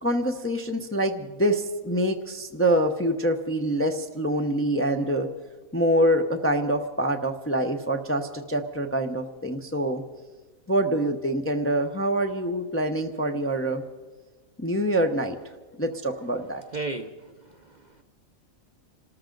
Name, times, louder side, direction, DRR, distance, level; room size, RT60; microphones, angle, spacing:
voice 1, 0.0-5.3 5.7-10.0 10.7-13.8 14.6-15.4 15.8-16.6, right 1 dB, 15° left, 4 dB, 0.6 m, -25 dB
voice 2, 16.7-18.0, right 3 dB, 40° right, 5 dB, 0.7 m, -35 dB
27.0 x 13.5 x 3.9 m, 1.3 s
omnidirectional pair, 1.4 m